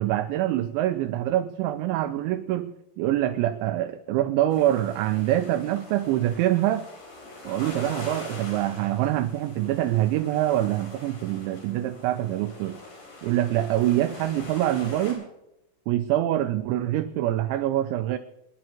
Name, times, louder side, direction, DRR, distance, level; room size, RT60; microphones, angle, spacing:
voice 1, 0.0-6.9 7.5-12.8 13.2-15.3 15.9-18.2, right 13 dB, 85° right, 9 dB, 2.6 m, -25 dB
sound 1, 4.5-15.1, left 2 dB, 55° left, 6.0 m, -43 dB
27.5 x 10.5 x 3.0 m, 0.90 s
omnidirectional pair, 5.8 m